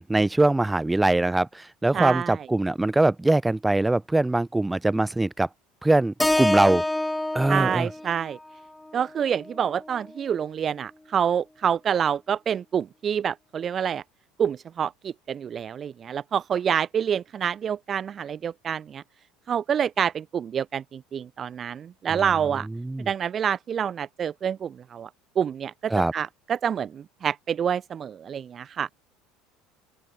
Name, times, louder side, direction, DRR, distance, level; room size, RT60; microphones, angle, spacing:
voice 1, 0.0-5.5 5.8-6.8 7.3-7.9 22.1-22.2 22.7-23.1 25.9-26.1, right 2 dB, 10° right, 0.7 m, -22 dB
voice 2, 1.9-2.4 7.5-8.4 8.9-14.0 14.4-19.0 19.5-22.7 23.1-25.1 25.4-28.9, right 8 dB, 35° right, 0.4 m, -27 dB
Keyboard (musical), 6.2-10.4, left 1 dB, 5° left, 1.5 m, -28 dB
open air
figure-of-eight pair, 65°, 0 cm